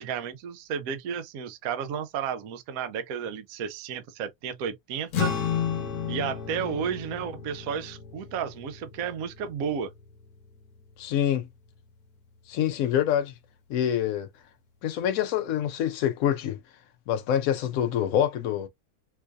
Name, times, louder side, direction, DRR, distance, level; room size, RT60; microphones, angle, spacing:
voice 1, 0.0-5.3 6.1-9.9, right 7 dB, 65° right, 0.9 m, -32 dB
sound 1, 5.1-11.8, left 7 dB, 60° left, 1.3 m, -33 dB
voice 2, 11.0-11.5 12.5-13.3 13.7-14.3 14.8-16.6 17.1-18.7, left 10 dB, 80° left, 0.7 m, -26 dB
4.7 x 2.6 x 2.2 m
omnidirectional pair, 2.1 m